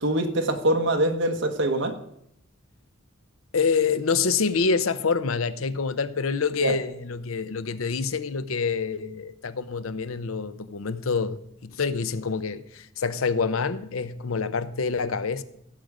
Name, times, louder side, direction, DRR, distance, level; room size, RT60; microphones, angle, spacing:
voice 1, 0.0-2.0 6.6-6.7, right 1 dB, 65° right, 1.3 m, -24 dB
voice 2, 3.5-15.4, left 5 dB, 80° left, 0.7 m, -27 dB
16.0 x 6.7 x 4.9 m
head